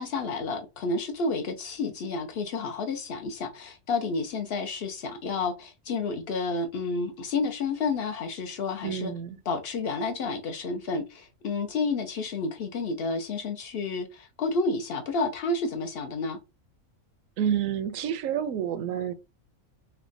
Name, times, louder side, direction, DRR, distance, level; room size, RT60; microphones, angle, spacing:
voice 1, 0.0-9.1 9.5-16.4, left 3 dB, 60° left, 0.6 m, -30 dB
voice 2, 8.8-9.4 17.4-19.1, right 9 dB, 75° right, 0.9 m, -29 dB
3.4 x 2.1 x 3.7 m
omnidirectional pair, 1.5 m